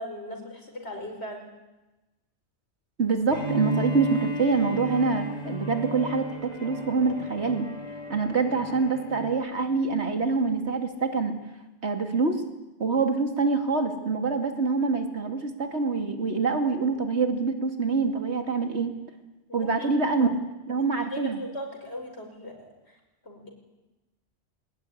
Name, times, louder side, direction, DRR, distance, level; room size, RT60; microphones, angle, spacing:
voice 1, 0.0-1.4 19.5-19.9 20.8-23.5, equal, 70° left, 3 dB, 5.5 m, -39 dB
voice 2, 3.0-6.3 6.6-7.7 8.1-11.3 11.8-12.4 12.8-18.9 19.5-20.3 20.7-21.4, right 4 dB, 75° right, 6 dB, 2.8 m, -25 dB
Bowed string instrument, 3.3-9.3, right 1 dB, 35° right, 4.1 m, -35 dB
21.5 x 20.5 x 10.0 m, 1.0 s
omnidirectional pair, 1.2 m